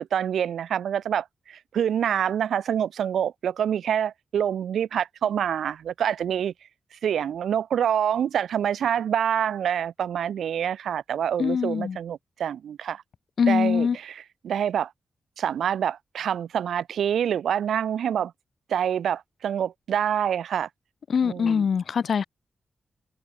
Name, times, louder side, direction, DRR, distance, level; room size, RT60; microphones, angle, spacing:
voice 1, 0.0-6.5 6.9-13.0 13.5-14.9 15.4-18.3 18.7-20.7 21.2-21.7, right 9 dB, 85° right, 1.5 m, -26 dB
voice 2, 11.4-12.0 13.4-14.0 21.1-22.3, left 6 dB, 70° left, 4.1 m, -23 dB
cardioid pair, 55°, 0 cm